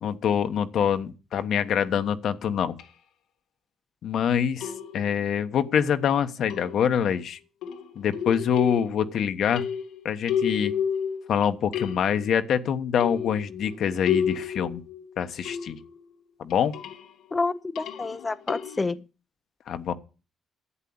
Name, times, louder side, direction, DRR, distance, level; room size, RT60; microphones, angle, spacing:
voice 1, 0.0-2.8 4.0-7.4 7.9-9.6 10.0-10.7 11.3-14.8 15.2-15.8 16.4-16.7 19.7-19.9, left 8 dB, 70° left, 1.2 m, -25 dB
sound 1, 2.8-2.9 4.6-5.2 6.5-7.1 7.6-9.2 9.5-11.4 11.7-12.3 13.0-16.0 16.5-17.1 17.8-18.9, left 8 dB, 90° left, 1.6 m, -31 dB
voice 2, 17.3-19.1, left 3 dB, 25° left, 0.7 m, -28 dB
11.5 x 8.3 x 8.7 m
cardioid pair, 90°, 0 cm